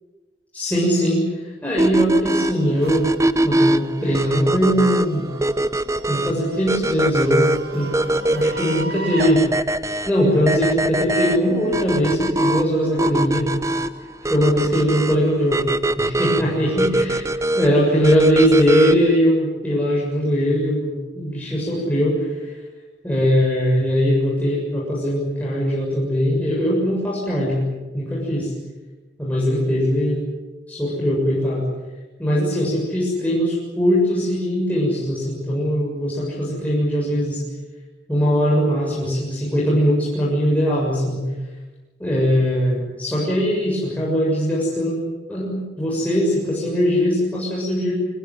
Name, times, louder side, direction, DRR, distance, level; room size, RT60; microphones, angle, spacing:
voice 1, 0.5-3.2 3.4-5.3 6.1-7.9 8.3-9.5 10.1-13.5 14.3-15.7 16.0-17.3 17.6-22.3 23.0-27.7 27.9-28.5 29.2-30.2 30.7-31.6 32.2-37.4 38.1-41.2 42.0-45.0 45.3-47.9, equal, 10° left, -6 dB, 7.3 m, -20 dB
sound 1, 1.8-19.2, right 1 dB, 15° right, 0.7 m, -22 dB
sound 2, 2.3-9.3, right 1 dB, 60° right, 3.1 m, -36 dB
25.0 x 20.0 x 9.5 m, 1.2 s
head